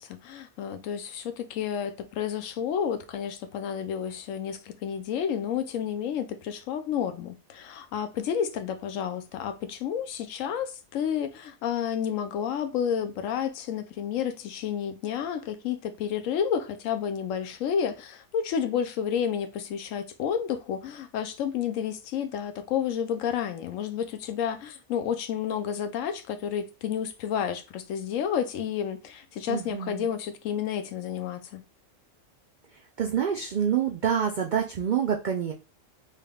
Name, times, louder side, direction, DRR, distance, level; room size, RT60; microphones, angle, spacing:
voice 1, 0.0-31.6, left 8 dB, 80° left, 1.0 m, -30 dB
voice 2, 29.5-30.1 33.0-35.5, right 8 dB, 70° right, 0.4 m, -27 dB
3.4 x 3.3 x 2.3 m
omnidirectional pair, 1.4 m